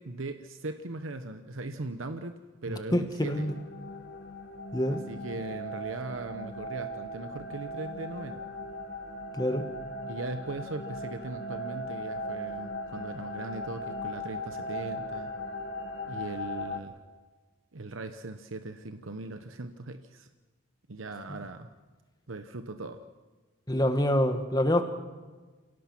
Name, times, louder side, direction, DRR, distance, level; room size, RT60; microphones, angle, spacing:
voice 1, 0.0-3.5 5.1-8.4 10.1-15.3 16.1-16.9 17.7-20.3 20.9-21.7 22.3-23.0, right 2 dB, 90° right, 8 dB, 1.0 m, -39 dB
voice 2, 2.7-3.5 4.7-5.0 9.4-9.6 23.7-24.8, left 1 dB, 20° left, 8 dB, 1.4 m, -26 dB
sound 1, 3.3-16.8, left 1 dB, 65° left, 2.1 m, -38 dB
28.5 x 17.5 x 6.1 m, 1.3 s
head